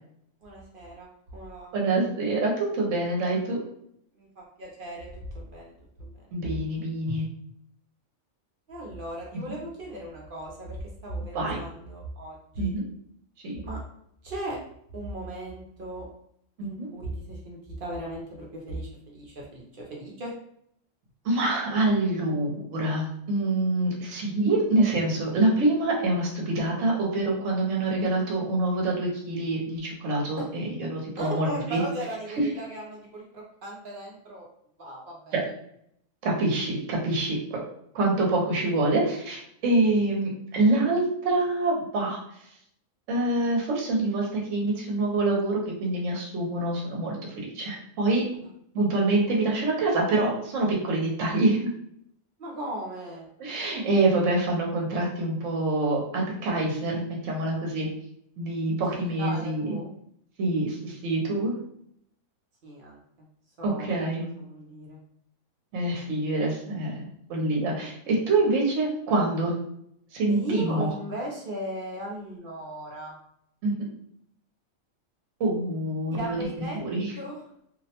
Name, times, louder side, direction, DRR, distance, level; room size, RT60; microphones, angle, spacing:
voice 1, 0.4-1.1 1.3-1.7 4.1-5.7 6.0-6.3 8.7-12.7 13.6-13.8 14.2-14.6 14.9-16.1 16.6-20.3 30.4-30.5 31.2-34.5 34.8-35.4 48.4-48.5 52.4-53.3 57.8-57.9 58.9-59.9 62.6-63.3 63.6-65.0 70.3-73.2 76.1-76.8 77.2-77.4, right 1 dB, 55° right, -3 dB, 0.6 m, -37 dB
voice 2, 1.7-3.6 6.3-7.2 11.3-11.6 12.6-12.8 13.4-13.6 16.6-16.9 21.2-31.8 36.2-37.6 37.9-42.2 43.1-48.2 48.7-51.7 53.4-57.9 58.4-59.8 60.4-61.5 63.6-64.2 65.7-69.5 70.1-70.9 73.6-73.9 75.4-77.1, right 2 dB, 75° right, -1 dB, 1.0 m, -26 dB
2.5 x 2.0 x 2.8 m, 0.71 s
omnidirectional pair, 1.4 m